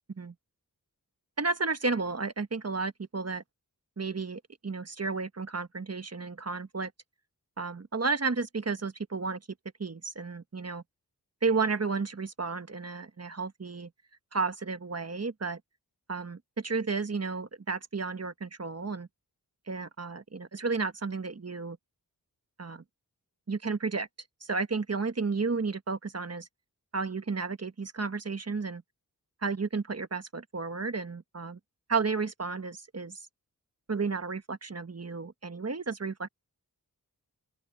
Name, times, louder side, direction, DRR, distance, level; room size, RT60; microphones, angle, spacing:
voice 1, 1.4-3.4 4.0-6.9 7.6-9.4 9.8-10.8 11.4-13.9 14.3-15.6 16.1-19.1 19.7-21.8 22.6-22.8 23.5-24.1 24.4-26.5 26.9-28.8 29.4-31.6 31.9-33.2 33.9-36.3, right 4 dB, 40° right, 1.3 m, -32 dB
open air
wide cardioid pair, 65°, 38 cm